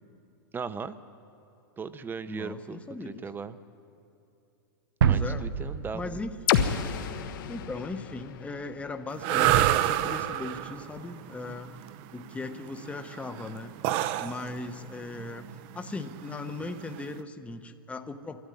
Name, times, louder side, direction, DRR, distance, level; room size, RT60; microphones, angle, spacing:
voice 1, 0.5-1.0 1.8-3.6 5.1-6.2, right 5 dB, 15° right, 13 dB, 1.0 m, -37 dB
voice 2, 2.3-3.2 5.0-5.5 5.9-6.4 7.5-11.8 12.1-13.7 14.2-15.5 15.7-18.5, left 3 dB, 10° left, 7 dB, 1.1 m, -38 dB
sound 1, 5.0-7.5, right 8 dB, 80° right, 0.7 m, -28 dB
sound 2, 6.5-10.3, left 8 dB, 65° left, 1.4 m, -31 dB
sound 3, 9.1-17.2, right 12 dB, 45° right, 0.9 m, -28 dB
24.5 x 13.0 x 9.9 m, 2.7 s
hypercardioid pair, 120°, 12 cm